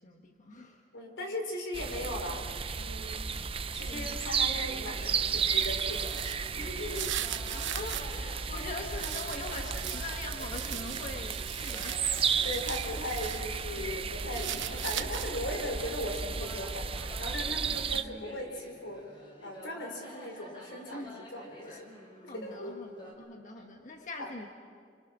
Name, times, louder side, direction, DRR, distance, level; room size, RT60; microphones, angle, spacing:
voice 1, 0.0-0.8 3.9-4.3 7.5-12.0 17.9-18.2 20.9-21.2 21.6-21.8 22.3-24.5, left 2 dB, 45° left, 3 dB, 1.4 m, -42 dB
voice 2, 0.9-2.4 2.7-3.3 3.7-6.1 6.6-7.1 12.4-19.0 19.4-21.9 22.3-22.7 24.2-24.3, left 1 dB, 85° left, 3 dB, 4.1 m, -38 dB
sound 1, 1.7-18.0, right 6 dB, 30° right, 0.6 m, -34 dB
sound 2, 4.5-23.1, equal, 25° left, 5.4 m, -50 dB
sound 3, 5.0-8.2 8.6-13.4 13.8-15.5, right 12 dB, 80° right, 0.8 m, -40 dB
26.0 x 26.0 x 6.1 m, 2.1 s
head